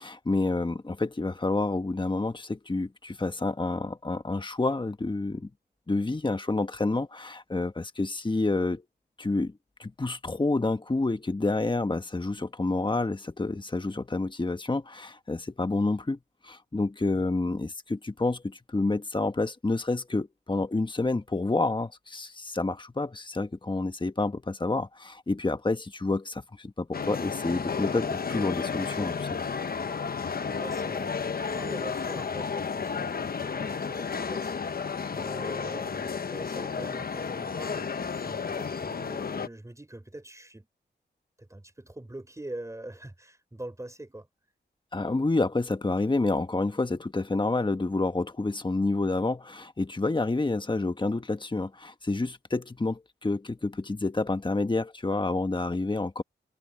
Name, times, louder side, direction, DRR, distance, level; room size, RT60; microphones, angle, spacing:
voice 1, 0.0-5.5 5.9-8.8 9.2-9.5 9.8-16.2 16.4-29.3 44.9-56.2, left 2 dB, 25° left, 1.5 m, -29 dB
sound 1, 26.9-39.5, left 5 dB, 50° left, 1.1 m, -32 dB
voice 2, 30.1-31.1 31.5-34.9 35.1-40.7 41.4-44.3, right 1 dB, 15° right, 4.2 m, -43 dB
cardioid pair, 55°, 19 cm